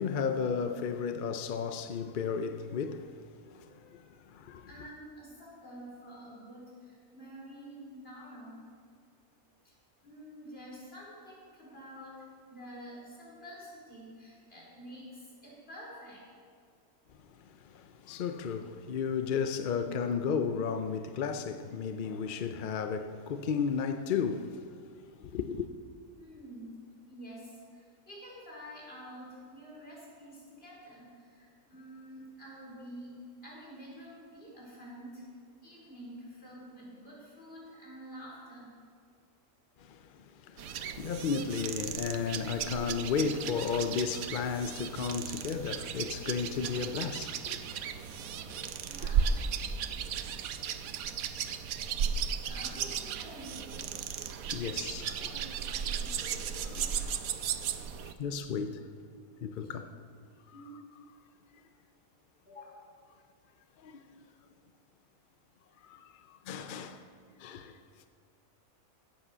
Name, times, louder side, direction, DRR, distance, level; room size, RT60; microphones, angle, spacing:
voice 1, 0.0-3.2 3.5-4.7 17.4-24.7 25.1-25.7 39.8-48.1 48.4-48.6 53.8-53.9 54.5-55.9 56.2-57.2 58.0-58.8 59.4-59.9 63.8-64.3 65.8-67.1 67.4-67.8, left 6 dB, 60° left, 0.5 m, -34 dB
voice 2, 4.7-8.7 9.6-9.7 10.0-16.2 26.1-26.8 27.1-33.2 33.4-35.3 35.6-38.7 48.3-49.3 52.4-53.9 55.7-56.2 59.6-59.7 60.5-60.8 62.4-62.9, equal, 40° left, 4.7 m, -48 dB
sound 1, 40.6-58.1, right 7 dB, 85° right, 1.1 m, -35 dB
15.5 x 8.6 x 6.8 m
omnidirectional pair, 1.5 m